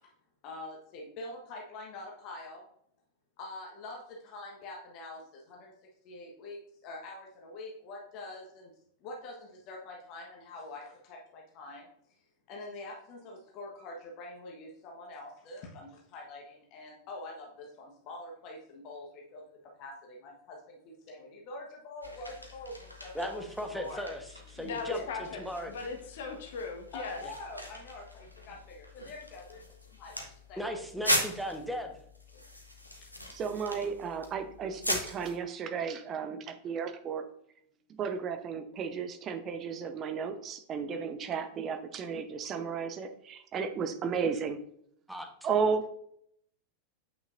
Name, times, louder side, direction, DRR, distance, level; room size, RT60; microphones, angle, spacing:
voice 1, 0.4-2.7 3.4-5.7 6.0-8.7 9.0-11.9 12.5-23.4 23.7-24.0 24.9-25.1 26.9-29.6 30.0-30.8 32.3-32.4, left 2 dB, 40° left, -1 dB, 1.3 m, -45 dB
sound 1, 22.0-35.4, left 1 dB, 85° left, 1.2 m, -39 dB
voice 2, 23.1-25.7 27.2-27.3 30.6-31.9 45.1-45.3, equal, ahead, 4 dB, 1.2 m, -37 dB
voice 3, 24.5-25.4 25.7-27.2, left 4 dB, 55° left, 3 dB, 1.3 m, -38 dB
voice 4, 33.3-37.2 37.9-44.6 45.4-45.9, right 6 dB, 30° right, 8 dB, 0.8 m, -33 dB
8.3 x 5.9 x 2.6 m, 0.68 s
figure-of-eight pair, 90°, 0 cm